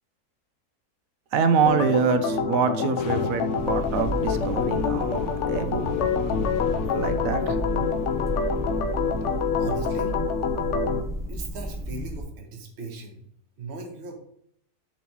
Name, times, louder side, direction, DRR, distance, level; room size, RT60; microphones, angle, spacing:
voice 1, 1.3-5.9 6.9-7.6, right 6 dB, 70° right, 9 dB, 1.0 m, -25 dB
Organ, 1.7-11.0, left 5 dB, 65° left, 0.8 m, -26 dB
sound 1, 3.0-11.0, left 9 dB, 90° left, 1.1 m, -40 dB
sound 2, 3.6-12.2, right 1 dB, 5° right, 0.4 m, -33 dB
voice 2, 9.6-10.1 11.3-13.2 13.6-14.2, right 3 dB, 45° right, 2 dB, 1.4 m, -38 dB
7.2 x 3.0 x 5.4 m, 0.69 s
omnidirectional pair, 1.6 m